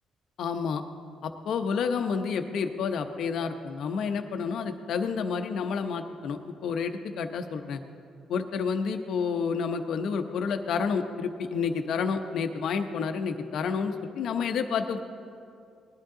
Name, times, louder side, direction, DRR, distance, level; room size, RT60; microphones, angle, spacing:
voice 1, 0.4-0.8 1.2-7.8 8.3-15.0, left 5 dB, 75° left, 7 dB, 0.8 m, -29 dB
19.5 x 11.0 x 3.8 m, 2.5 s
cardioid pair, 90°, 0 cm